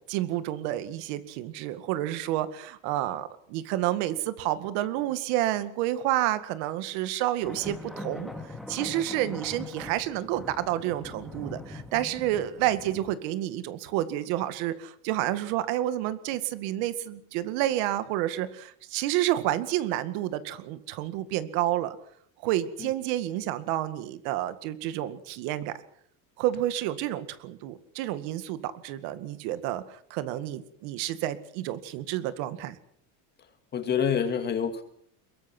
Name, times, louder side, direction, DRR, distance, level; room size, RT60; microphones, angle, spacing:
voice 1, 0.0-8.3 8.7-22.0 22.4-25.7 26.4-29.8 30.1-32.8, right 13 dB, 75° right, 11 dB, 2.1 m, -29 dB
sound 1, 7.4-13.2, left 2 dB, ahead, 2.4 m, -41 dB
voice 2, 33.7-34.8, left 7 dB, 25° left, 8 dB, 2.2 m, -27 dB
23.0 x 22.5 x 6.2 m, 0.64 s
cardioid pair, 170°, 37 cm